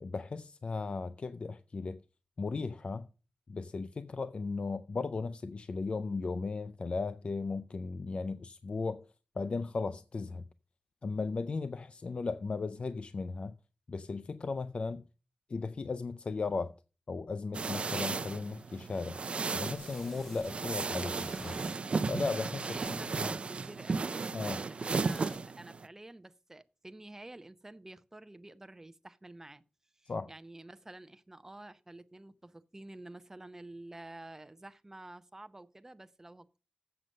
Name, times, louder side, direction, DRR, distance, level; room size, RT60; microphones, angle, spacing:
voice 1, 0.0-2.0 2.4-3.1 3.5-9.1 9.4-10.4 11.0-13.5 13.9-15.0 15.5-16.7 17.1-19.2 19.5-21.6 22.1-22.8 23.2-23.3 24.3-24.6 30.1-30.3, left 4 dB, 55° left, 0.4 m, -36 dB
sound 1, 17.5-25.9, right 4 dB, 60° right, 0.4 m, -35 dB
sound 2, 18.6-18.7 19.7-20.6 21.0-21.8 22.4-23.5 24.8-25.4, left 1 dB, 15° left, 0.6 m, -55 dB
voice 2, 22.6-29.6 30.0-36.6, right 2 dB, 20° right, 0.7 m, -50 dB
7.8 x 6.6 x 7.5 m
wide cardioid pair, 100°, 2 cm